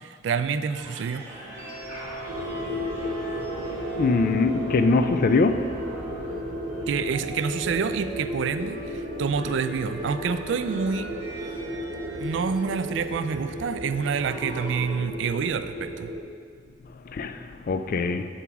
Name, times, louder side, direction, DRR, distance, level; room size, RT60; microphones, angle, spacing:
voice 1, 0.0-1.3 6.9-11.1 12.2-16.1, right 6 dB, 70° right, 0.3 m, -28 dB
sound 1, 0.7-14.9, right 1 dB, 15° right, 1.9 m, -42 dB
sound 2, 1.3-7.9, right 3 dB, 35° left, 1.8 m, -41 dB
sound 3, 2.3-16.2, equal, 90° right, 1.0 m, -34 dB
voice 2, 4.0-5.7 17.1-18.3, left 3 dB, 50° left, 0.4 m, -22 dB
7.1 x 4.8 x 5.9 m
head